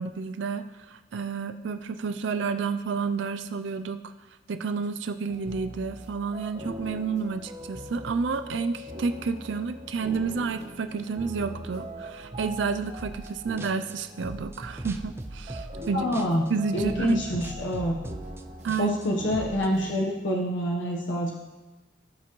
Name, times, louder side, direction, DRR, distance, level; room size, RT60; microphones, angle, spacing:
voice 1, 0.0-4.1 4.5-16.1 16.5-17.2 18.6-19.0, right 5 dB, 80° right, 9 dB, 0.4 m, -30 dB
sound 1, 5.3-20.0, equal, 40° right, 1.3 m, -42 dB
sound 2, 13.0-13.3 13.6-16.5 16.8-19.7, right 1 dB, 15° right, 0.4 m, -39 dB
voice 2, 15.9-16.4 16.7-18.0 18.8-21.3, equal, 85° left, -1 dB, 1.2 m, -26 dB
17.5 x 5.9 x 3.1 m, 1.1 s
head